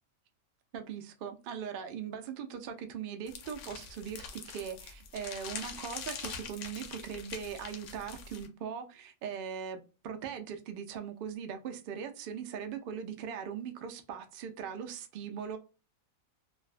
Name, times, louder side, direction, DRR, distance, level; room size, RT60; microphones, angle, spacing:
voice 1, 0.7-15.6, right 7 dB, 70° right, 0.5 m, -40 dB
sound 1, 3.3-8.5, left 6 dB, 70° left, 0.9 m, -44 dB
2.5 x 2.2 x 2.3 m
omnidirectional pair, 1.4 m